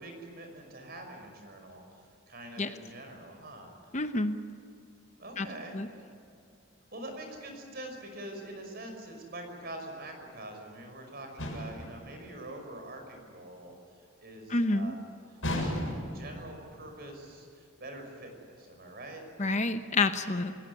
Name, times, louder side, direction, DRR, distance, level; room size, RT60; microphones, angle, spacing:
voice 1, 0.0-1.8 2.3-3.9 5.2-6.0 6.9-13.7 14.2-15.1 15.5-15.7 16.1-19.2, right 1 dB, 45° right, 4 dB, 5.8 m, -44 dB
voice 2, 3.9-4.4 5.4-5.5 5.7-5.9 14.5-14.9 19.4-20.5, left 2 dB, 35° left, 8 dB, 0.9 m, -28 dB
sound 1, 11.4-11.9 15.4-16.2, left 1 dB, 65° left, 7.1 m, -33 dB
29.0 x 17.0 x 9.8 m, 2.6 s
head